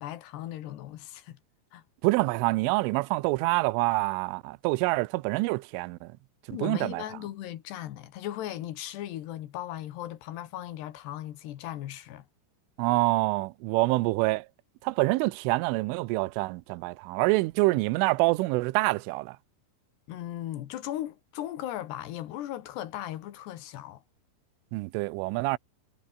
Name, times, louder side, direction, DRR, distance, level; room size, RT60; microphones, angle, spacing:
voice 1, 0.0-1.4 1.7-1.8 6.5-12.3 20.1-24.0, left 13 dB, 65° left, 3.2 m, -37 dB
voice 2, 2.0-6.1 6.5-7.0 12.8-14.5 14.8-19.4 24.7-25.6, right 22 dB, 85° right, 3.2 m, -26 dB
omnidirectional pair, 5.8 m